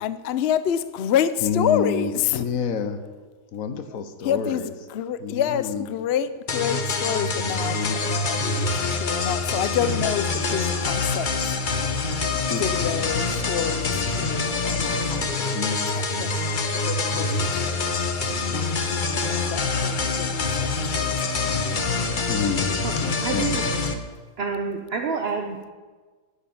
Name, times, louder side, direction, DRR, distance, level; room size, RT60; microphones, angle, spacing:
voice 1, 0.0-2.5 4.2-12.0 12.3-15.6 15.9-16.3 16.7-17.8 18.4-19.0 19.3-21.5, left 9 dB, 85° left, 14 dB, 0.5 m, -28 dB
voice 2, 1.4-3.0 3.5-4.7 5.2-5.9 7.5-8.0 12.5-12.6 15.5-15.9 22.2-22.7 23.0-23.6, left 6 dB, 55° left, 9 dB, 1.2 m, -28 dB
sound 1, 6.5-23.9, left 3 dB, 40° left, 0.8 m, -25 dB
voice 3, 23.2-23.6 24.4-25.7, right 5 dB, 50° right, 3 dB, 0.8 m, -28 dB
9.7 x 8.3 x 8.6 m, 1.4 s
omnidirectional pair, 1.9 m